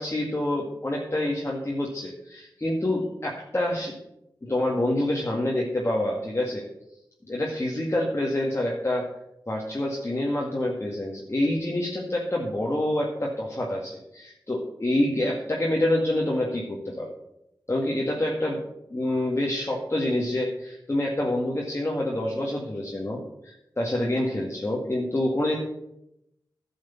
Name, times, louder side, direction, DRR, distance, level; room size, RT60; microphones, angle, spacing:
voice 1, 0.0-4.0 4.4-6.7 7.3-9.1 9.5-17.1 17.7-18.6 18.9-25.6, left 1 dB, 30° left, -2 dB, 1.9 m, -27 dB
11.0 x 6.4 x 7.2 m, 0.84 s
cardioid pair, 55°, 9 cm